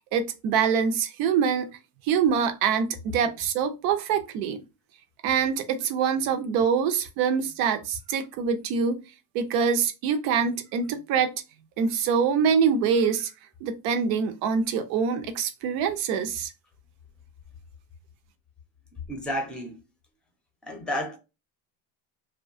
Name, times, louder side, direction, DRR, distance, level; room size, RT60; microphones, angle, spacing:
voice 1, 0.1-1.7 2.1-4.6 5.2-9.0 9.3-11.3 11.8-13.3 13.6-16.5, right 6 dB, 75° right, 0.7 m, -25 dB
voice 2, 19.1-19.8 20.6-21.2, left 1 dB, ahead, 0.6 m, -31 dB
2.8 x 2.2 x 2.6 m
cardioid pair, 150°, 40 cm